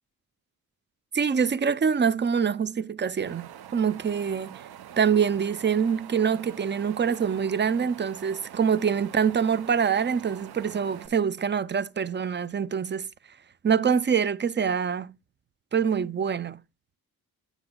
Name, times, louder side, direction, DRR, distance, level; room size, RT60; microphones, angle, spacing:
voice 1, 1.1-4.6 5.0-13.1 13.6-15.1 15.7-16.6, right 7 dB, 30° right, 0.5 m, -25 dB
Wind, 3.3-11.1, right 10 dB, 80° right, 0.6 m, -45 dB
9.6 x 7.1 x 2.2 m
cardioid pair, 70°, 38 cm